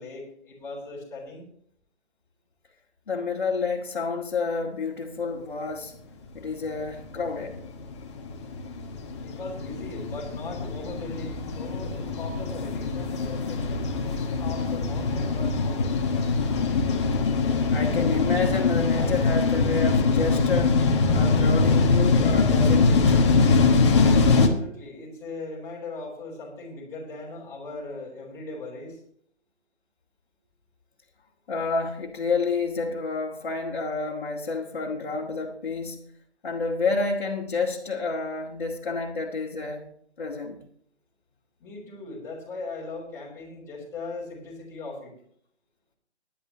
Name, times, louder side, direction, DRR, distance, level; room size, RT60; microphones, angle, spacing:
voice 1, 0.0-1.5 9.2-13.9 14.4-15.9 24.3-29.0 41.6-45.1, left 3 dB, 10° left, 3.6 m, -39 dB
voice 2, 3.1-5.9 6.3-7.6 17.7-23.2 31.5-36.0 36.4-39.9 40.2-40.6, left 4 dB, 45° left, 1.9 m, -29 dB
sound 1, 6.8-24.5, left 4 dB, 25° left, 1.3 m, -23 dB
18.5 x 10.5 x 3.0 m
figure-of-eight pair, 150°, 34 cm